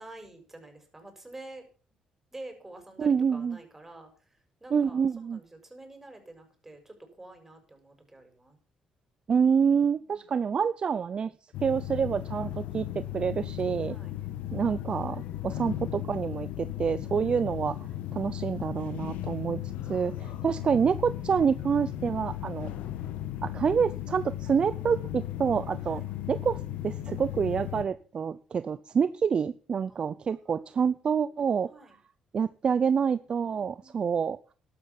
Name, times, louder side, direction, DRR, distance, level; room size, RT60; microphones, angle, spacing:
voice 1, 0.0-1.6 2.3-4.1 4.6-5.0 5.3-8.6 9.9-10.3 13.9-14.1 17.3-17.4 25.9-26.1 29.9-30.4 31.6-32.0 33.5-34.0, right 2 dB, 15° right, 5 dB, 6.6 m, -49 dB
voice 2, 3.0-3.6 4.7-5.4 9.3-11.3 11.6-14.0 14.5-17.8 18.1-22.7 23.4-26.0 26.3-31.7 32.3-34.4, right 6 dB, 45° right, 14 dB, 0.6 m, -27 dB
sound 1, 11.5-27.8, left 12 dB, 85° left, 1.6 m, -36 dB
13.0 x 12.0 x 6.1 m, 0.39 s
cardioid pair, 90°, 2 cm